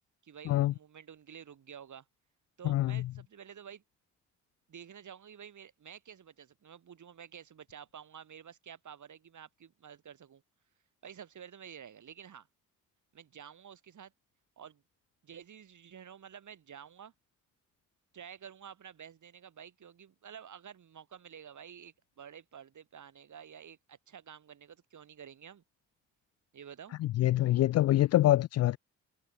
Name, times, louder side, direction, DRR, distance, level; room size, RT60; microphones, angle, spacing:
voice 1, 0.2-2.1 2.6-3.8 4.7-10.4 11.0-12.5 13.1-14.1 14.6-14.8 15.2-17.1 18.1-25.6 26.5-27.0, right 8 dB, 45° right, 5.3 m, -50 dB
voice 2, 2.6-3.0 27.0-28.8, left 14 dB, 40° left, 0.5 m, -25 dB
figure-of-eight pair, 40°, 40 cm